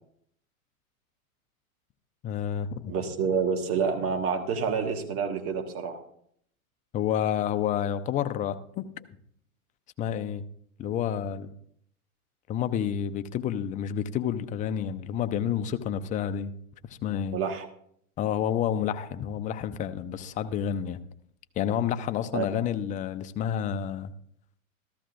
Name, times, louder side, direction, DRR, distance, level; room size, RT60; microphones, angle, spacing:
voice 1, 2.2-2.9 6.9-8.8 10.0-10.4 10.8-11.5 12.5-16.5 17.0-17.4 18.2-21.0 21.6-24.1, left 9 dB, 20° left, 10 dB, 0.4 m, -29 dB
voice 2, 2.9-6.0 17.3-17.7 22.3-22.6, right 6 dB, 30° right, 4 dB, 1.6 m, -28 dB
14.0 x 13.5 x 2.6 m, 0.67 s
hypercardioid pair, 110°, 43 cm